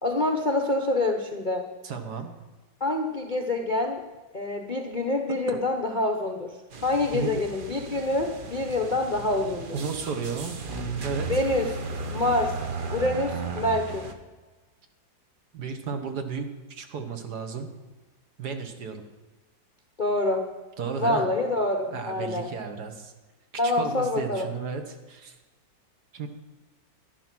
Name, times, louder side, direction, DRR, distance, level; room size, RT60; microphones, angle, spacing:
voice 1, 0.0-1.7 2.8-4.0 4.3-6.5 6.8-9.8 11.3-11.7 12.1-12.5 12.9-14.1 20.0-20.4 21.0-22.5 23.6-24.5, left 2 dB, 35° left, 3 dB, 0.7 m, -26 dB
voice 2, 1.8-2.3 5.5-5.6 7.1-7.4 9.7-11.3 15.5-17.7 18.4-19.0 20.8-21.3 21.9-23.1 23.6-25.3 26.1-26.3, right 5 dB, 60° right, 6 dB, 1.7 m, -33 dB
sound 1, 6.7-14.1, right 4 dB, 40° right, 0.7 m, -35 dB
11.0 x 11.0 x 6.0 m, 1.3 s
omnidirectional pair, 2.0 m